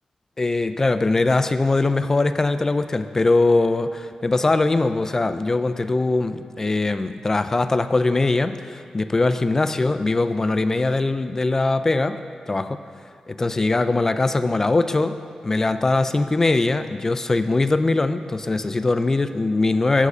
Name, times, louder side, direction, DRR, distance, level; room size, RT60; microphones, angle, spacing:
voice 1, 0.4-12.2 12.5-12.8 13.3-15.2 15.4-20.1, left 3 dB, 25° left, 11 dB, 0.3 m, -21 dB
10.5 x 5.0 x 6.7 m, 2.2 s
wide cardioid pair, 155°, 2 cm